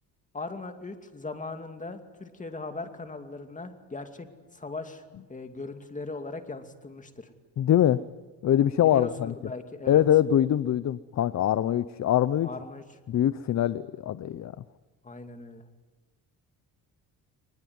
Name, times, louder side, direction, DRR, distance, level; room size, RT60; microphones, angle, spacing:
voice 1, 0.3-4.3 4.5-5.0 5.3-7.3 8.8-10.0 12.4-12.8 15.0-15.6, left 3 dB, 20° left, 7 dB, 2.5 m, -39 dB
voice 2, 7.6-8.0 8.4-9.3 9.9-12.5 13.1-14.5, left 11 dB, 45° left, 16 dB, 0.7 m, -23 dB
24.0 x 20.5 x 9.5 m, 1.2 s
cardioid pair, 115°, 40 cm